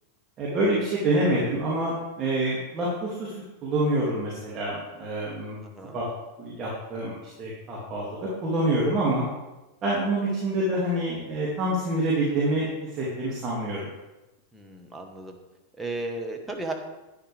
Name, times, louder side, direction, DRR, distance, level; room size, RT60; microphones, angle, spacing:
voice 1, 0.4-3.3 3.6-5.6 5.9-6.1 6.4-7.1 7.4-9.3 9.8-13.9, right 1 dB, 30° right, -5 dB, 2.5 m, -26 dB
voice 2, 5.6-6.0 14.5-15.4 15.8-16.7, right 2 dB, 5° right, 1 dB, 1.4 m, -34 dB
12.0 x 9.3 x 3.5 m, 1.0 s
figure-of-eight pair, 90°, 0 cm